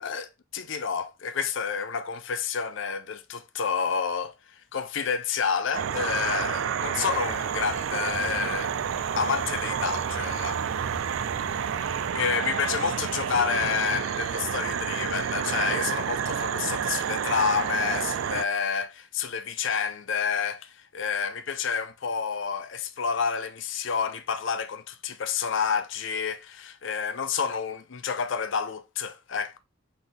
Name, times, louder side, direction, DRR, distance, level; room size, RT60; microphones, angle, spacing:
voice 1, 0.0-8.7 9.1-10.6 11.8-29.6, left 6 dB, 60° left, 0.5 m, -29 dB
sound 1, 5.7-18.4, right 8 dB, 70° right, 0.3 m, -29 dB
sound 2, 7.1-12.1, left 1 dB, 10° left, 1.9 m, -44 dB
4.0 x 3.9 x 3.2 m
head